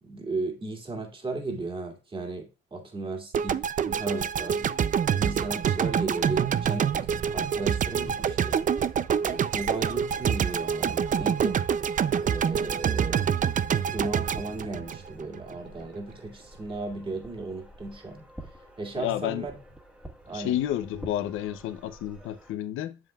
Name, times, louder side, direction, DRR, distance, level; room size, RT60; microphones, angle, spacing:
voice 1, 0.0-4.8 5.1-6.9 7.3-8.6 9.2-11.6 12.2-13.4 13.9-18.2 18.8-19.5 20.3-20.6, right 3 dB, 25° right, 2.1 m, -35 dB
sound 1, 3.3-15.6, right 8 dB, 40° right, 0.4 m, -26 dB
sound 2, 5.7-22.5, right 1 dB, 5° right, 1.5 m, -49 dB
voice 2, 18.9-19.5 20.3-23.0, left 12 dB, 90° left, 0.7 m, -30 dB
7.6 x 7.2 x 2.3 m
cardioid pair, 90°, 20 cm